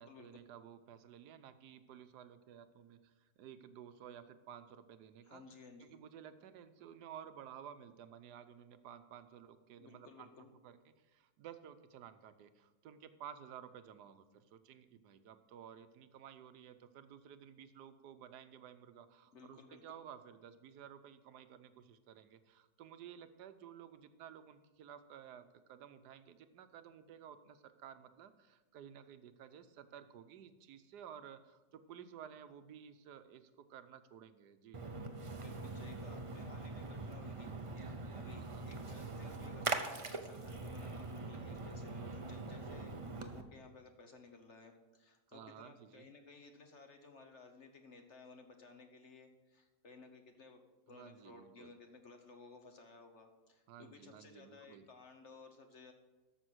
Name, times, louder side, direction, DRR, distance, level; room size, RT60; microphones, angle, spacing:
voice 1, 0.0-5.4 5.8-10.3 10.6-34.8 38.3-38.7 45.3-46.1 50.9-51.7 53.7-54.9, right 9 dB, 75° right, 10 dB, 1.3 m, -54 dB
voice 2, 5.2-5.9 9.8-10.5 19.3-19.8 35.4-55.9, left 4 dB, 50° left, 5 dB, 1.1 m, -57 dB
Splash splatter, 34.7-43.4, right 3 dB, 40° right, 0.4 m, -43 dB
12.5 x 7.0 x 6.2 m, 1.2 s
omnidirectional pair, 1.8 m